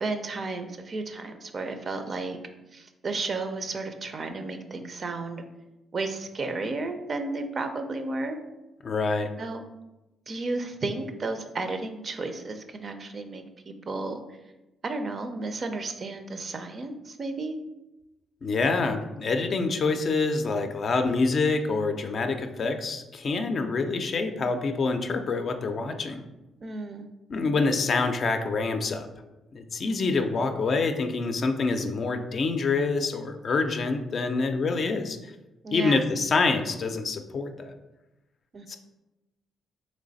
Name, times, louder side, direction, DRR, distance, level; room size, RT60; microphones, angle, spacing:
voice 1, 0.0-2.4 2.7-5.4 5.9-8.4 9.4-9.6 10.3-14.2 14.8-17.6 26.6-27.1 35.6-36.1 38.5-38.8, right 3 dB, 45° right, 7 dB, 0.5 m, -33 dB
voice 2, 8.8-9.3 18.4-26.2 27.3-29.1 29.5-35.3 35.7-37.7 38.7-38.8, left 3 dB, 50° left, 6 dB, 0.4 m, -26 dB
3.2 x 3.1 x 4.0 m, 1.0 s
cardioid pair, 85°, 0 cm